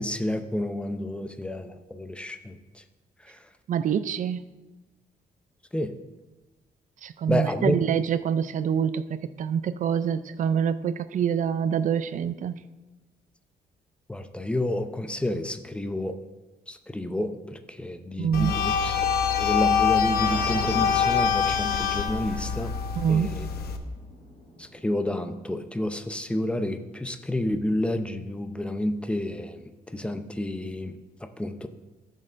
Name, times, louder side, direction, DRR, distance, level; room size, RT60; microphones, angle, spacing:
voice 1, 0.0-2.6 5.7-5.9 7.3-7.8 14.1-16.1 16.7-18.9 19.4-22.7 23.1-23.5 24.6-29.6 29.9-31.0 31.4-31.7, left 1 dB, 5° left, 8 dB, 0.6 m, -29 dB
voice 2, 3.7-4.4 7.0-9.0 9.4-12.6 18.2-18.5 23.0-23.3, right 8 dB, 55° right, 13 dB, 0.5 m, -25 dB
sound 1, 18.3-23.8, left 7 dB, 85° left, 0.8 m, -25 dB
sound 2, 20.1-26.3, equal, 45° left, 2.7 m, -43 dB
14.5 x 6.5 x 2.6 m, 1.2 s
cardioid pair, 105°, 16 cm